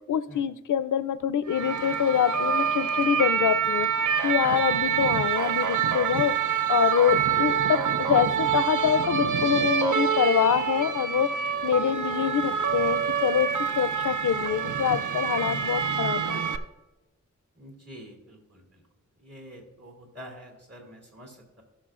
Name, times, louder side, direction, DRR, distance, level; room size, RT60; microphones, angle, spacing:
voice 1, 0.1-3.9 4.2-6.4 6.7-11.4 11.6-13.5 13.8-16.4, left 9 dB, 85° left, 0.5 m, -25 dB
sound 1, 1.5-16.6, right 7 dB, 80° right, 0.6 m, -26 dB
voice 2, 17.5-18.8 19.2-21.6, equal, 55° right, 2.7 m, -47 dB
18.0 x 6.2 x 2.5 m
wide cardioid pair, 80°, 30 cm